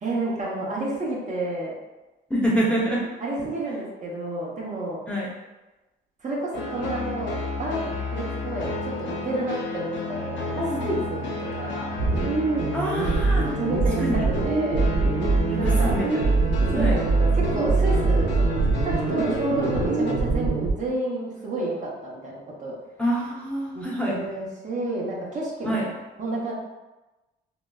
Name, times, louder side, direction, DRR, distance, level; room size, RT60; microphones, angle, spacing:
voice 1, 0.0-1.7 3.2-5.0 6.2-10.5 10.8-11.9 13.6-14.0 14.3-14.9 15.6-16.0 16.7-18.5 18.8-22.7 23.7-25.8 26.2-26.5, right 2 dB, 40° right, -4 dB, 0.8 m, -30 dB
voice 2, 2.3-3.1 5.1-5.3 10.6-11.0 12.7-13.5 14.0-14.3 15.4-16.3 16.7-17.0 23.0-24.1 25.6-25.8, equal, 5° left, -6 dB, 0.8 m, -26 dB
sound 1, 6.5-20.1, left 3 dB, 70° left, 0.5 m, -32 dB
sound 2, 12.0-20.7, right 3 dB, 75° right, 0.5 m, -23 dB
3.8 x 2.0 x 2.3 m, 1.1 s
cardioid pair, 90°, 20 cm